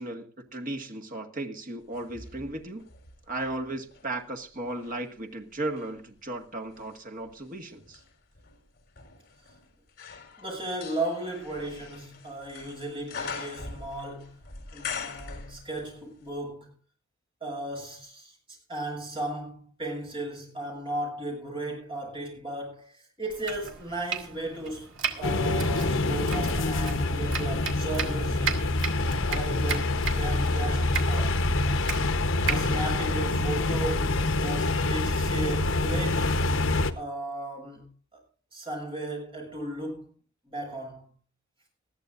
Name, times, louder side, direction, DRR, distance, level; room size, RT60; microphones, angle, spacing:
voice 1, 0.0-2.9 3.3-8.0, right 2 dB, 40° right, 1.9 m, -35 dB
sound 1, 1.9-4.1 4.6-16.0 16.3-16.4, left 5 dB, 45° left, 3.8 m, -43 dB
voice 2, 10.4-16.7 17.4-28.9 29.3-32.0 32.4-36.3 37.0-38.2 38.5-40.1 40.4-41.1, right 1 dB, 25° right, 7.1 m, -36 dB
Domestic sounds home sounds, 23.3-33.9, right 6 dB, 60° right, 2.4 m, -37 dB
sound 2, 25.2-36.9, left 2 dB, 70° left, 1.1 m, -26 dB
20.5 x 14.0 x 2.6 m
head